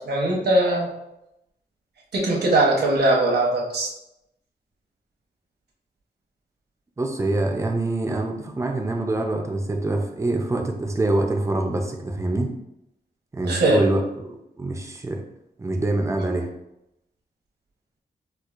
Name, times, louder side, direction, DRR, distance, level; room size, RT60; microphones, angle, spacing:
voice 1, 0.0-0.9 2.1-3.9 13.4-13.8, right 1 dB, 75° right, -2 dB, 0.9 m, -20 dB
voice 2, 7.0-12.5 13.3-15.2 15.6-16.5, right 2 dB, 15° right, 2 dB, 0.4 m, -25 dB
4.4 x 2.3 x 2.4 m, 0.85 s
wide cardioid pair, 130°, 17 cm